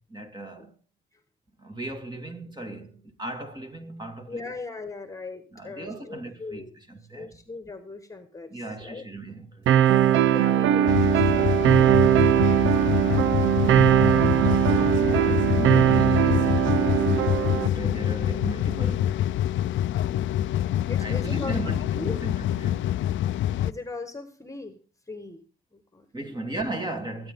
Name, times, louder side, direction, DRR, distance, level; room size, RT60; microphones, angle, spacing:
voice 1, 0.1-0.7 1.6-4.5 5.5-7.4 8.5-9.9 13.5-16.8 17.5-19.2 21.0-22.9 26.1-27.3, right 2 dB, 20° right, 2.4 m, -36 dB
voice 2, 4.3-6.7 7.1-9.1 10.3-12.2 20.9-22.2 23.6-24.8 25.1-25.4 25.7-26.4, left 3 dB, 15° left, 1.6 m, -39 dB
sound 1, 9.7-17.7, right 11 dB, 85° right, 0.7 m, -20 dB
sound 2, 10.9-23.7, left 12 dB, 75° left, 0.5 m, -26 dB
21.5 x 9.5 x 3.8 m
cardioid pair, 90°, 20 cm